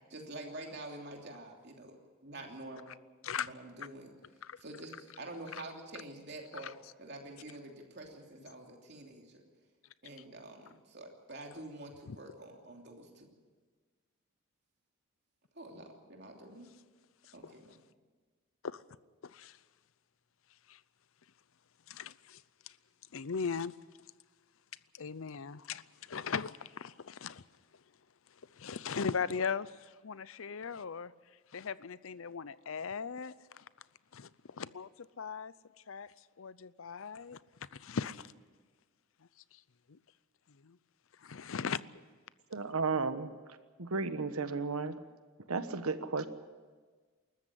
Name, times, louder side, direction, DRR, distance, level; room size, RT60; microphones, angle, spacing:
voice 1, 0.1-2.0 2.2-2.9 3.4-4.1 4.6-6.7 7.0-9.4 10.0-13.3 15.5-16.7 17.3-17.7, right 2 dB, 50° right, 3.0 m, -47 dB
voice 2, 19.2-19.6 20.7-20.8 21.9-22.7 23.1-23.7 24.9-27.4 28.5-31.1 31.5-33.6 34.1-35.5 35.9-37.4 37.7-38.3 39.5-39.6 39.9-40.0 40.6-40.8 41.2-41.8, left 6 dB, 70° left, 0.6 m, -39 dB
voice 3, 42.5-43.3 43.8-45.0 45.5-46.3, right 4 dB, 90° right, 1.2 m, -33 dB
21.0 x 14.0 x 9.9 m
head